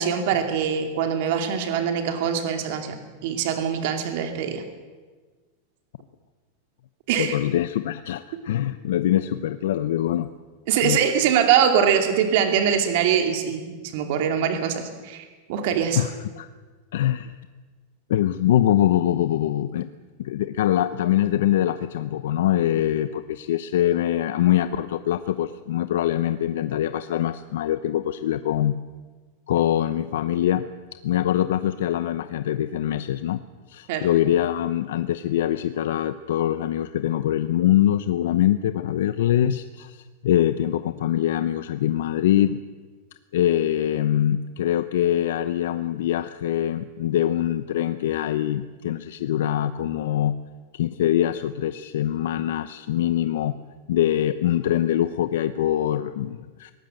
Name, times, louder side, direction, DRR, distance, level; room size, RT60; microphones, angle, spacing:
voice 1, 0.0-4.6 7.1-7.4 10.7-16.0 33.9-34.1, right 8 dB, 45° right, 6 dB, 2.6 m, -23 dB
voice 2, 7.2-10.3 10.8-11.0 16.0-16.5 16.9-17.3 18.1-19.9 20.2-28.8 29.5-30.7 31.0-33.4 33.7-42.6 43.3-50.4 50.7-53.6 53.9-56.7, left 12 dB, 70° left, 11 dB, 0.8 m, -23 dB
23.0 x 19.0 x 7.9 m, 1.4 s
supercardioid pair, 180°, 0 cm